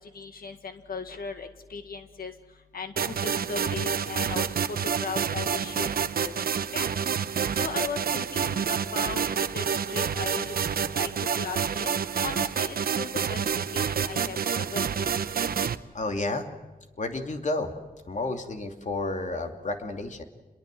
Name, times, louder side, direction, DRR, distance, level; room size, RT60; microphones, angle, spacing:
voice 1, 0.0-2.3 2.7-6.3 6.7-6.9 7.5-10.5 10.9-11.9 12.2-15.1, left 5 dB, 75° left, 7 dB, 1.8 m, -37 dB
sound 1, 3.0-15.8, right 7 dB, 80° right, 1.0 m, -28 dB
voice 2, 15.9-16.4 17.0-17.7 18.1-20.2, left 2 dB, 50° left, 5 dB, 2.9 m, -31 dB
28.0 x 22.0 x 7.7 m, 1.2 s
wide cardioid pair, 85°, 15 cm